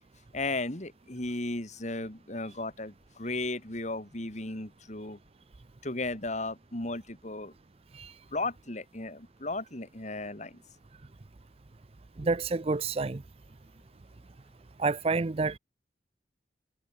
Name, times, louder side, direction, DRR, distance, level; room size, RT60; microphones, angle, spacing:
voice 1, 0.3-5.2 5.8-7.5 8.3-10.6, left 2 dB, 40° left, 3.2 m, -35 dB
voice 2, 12.2-13.2 14.8-15.6, right 3 dB, 35° right, 0.5 m, -28 dB
head